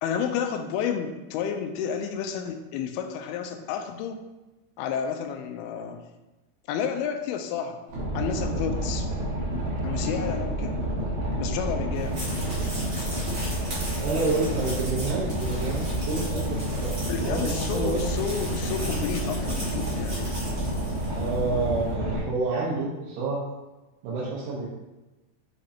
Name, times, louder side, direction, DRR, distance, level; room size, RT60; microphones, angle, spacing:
voice 1, 0.0-4.2 4.8-6.0 6.7-7.8 8.1-9.1 9.8-10.9 11.4-12.2 17.1-20.3, left 7 dB, 80° left, 6 dB, 2.4 m, -31 dB
Boat Water vehicle, 7.9-22.2, right 1 dB, 60° right, 2.3 m, -29 dB
sound 1, 11.9-21.5, equal, 35° right, 1.2 m, -38 dB
voice 2, 14.0-18.0 21.1-23.4 24.0-24.7, right 3 dB, 80° right, -7 dB, 3.0 m, -29 dB
7.8 x 5.0 x 2.8 m, 1.1 s
omnidirectional pair, 4.7 m